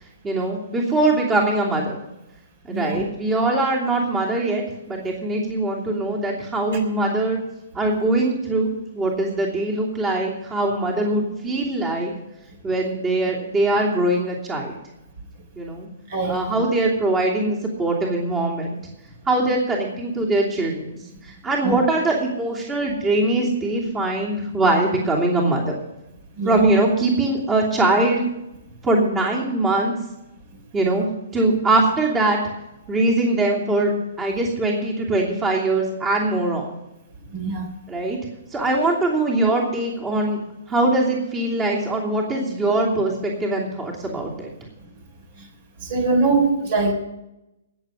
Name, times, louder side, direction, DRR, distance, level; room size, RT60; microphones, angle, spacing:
voice 1, 0.2-2.0 2.6-7.4 7.7-12.1 12.6-14.8 15.6-15.9 16.3-18.8 19.3-21.0 21.2-25.7 26.4-28.2 28.8-29.9 30.7-31.1 31.3-32.4 32.9-33.9 34.2-36.6 37.9-38.2 38.5-40.4 40.7-44.5, right 2 dB, 20° right, -2 dB, 2.9 m, -22 dB
voice 2, 2.7-3.0 16.1-16.5 21.6-21.8 26.4-26.6 37.3-37.7 45.8-46.9, right 3 dB, 50° right, 5 dB, 3.5 m, -22 dB
19.5 x 7.3 x 5.4 m, 0.92 s
hypercardioid pair, 130°, 0 cm